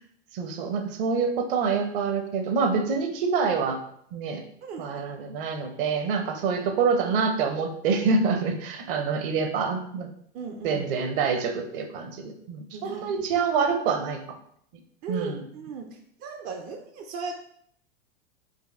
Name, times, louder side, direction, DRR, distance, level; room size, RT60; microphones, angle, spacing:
voice 1, 0.3-3.8 4.1-4.4 4.8-10.1 10.6-14.2 15.1-15.4, right 5 dB, 50° right, 6 dB, 0.8 m, -26 dB
voice 2, 4.6-5.1 10.3-10.9 12.7-13.3 15.0-15.9 16.2-17.4, right 4 dB, 30° right, 3 dB, 0.4 m, -37 dB
4.6 x 2.2 x 3.3 m, 0.67 s
hypercardioid pair, 100°, 34 cm